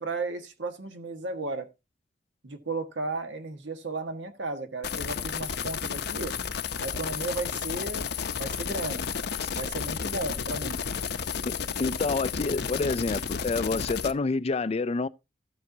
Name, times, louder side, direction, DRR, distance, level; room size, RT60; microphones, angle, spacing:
voice 1, 0.0-1.7 2.4-6.3 6.8-9.1 9.5-10.8, right 3 dB, 80° right, 1.5 m, -34 dB
sound 1, 4.8-14.1, left 6 dB, 65° left, 0.7 m, -32 dB
voice 2, 11.8-15.1, left 3 dB, 35° left, 0.4 m, -28 dB
14.0 x 7.9 x 2.8 m
head